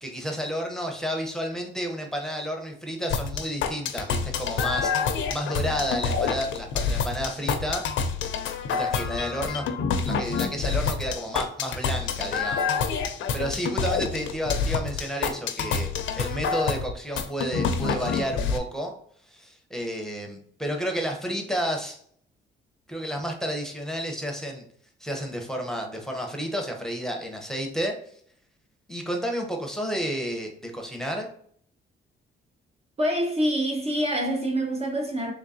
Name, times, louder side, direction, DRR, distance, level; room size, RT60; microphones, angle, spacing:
voice 1, 0.0-7.9 8.7-9.7 10.0-12.8 13.3-15.9 16.2-18.9 19.3-22.0 22.9-24.6 25.0-27.9 28.9-31.3, equal, ahead, 0.8 m, -31 dB
sound 1, 3.1-18.6, left 5 dB, 75° left, 0.5 m, -27 dB
voice 2, 33.0-35.3, equal, 30° right, 0.7 m, -26 dB
3.7 x 3.2 x 2.7 m
cardioid pair, 90°, 20 cm